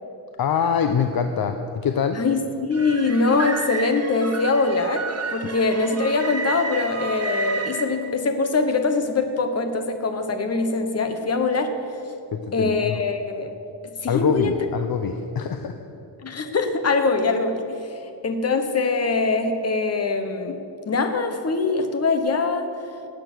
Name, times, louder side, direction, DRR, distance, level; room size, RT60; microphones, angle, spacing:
voice 1, 0.4-2.2 12.3-12.9 14.1-15.7, left 6 dB, 55° left, 7 dB, 0.7 m, -24 dB
voice 2, 2.1-5.1 5.3-11.7 12.5-13.5 14.0-14.6 16.2-18.0 18.2-20.6 20.9-22.7, left 3 dB, 35° left, 7 dB, 1.1 m, -23 dB
sound 1, 2.7-7.9, right 4 dB, 35° right, 1.4 m, -31 dB
18.5 x 8.7 x 6.2 m, 2.7 s
wide cardioid pair, 165°, 44 cm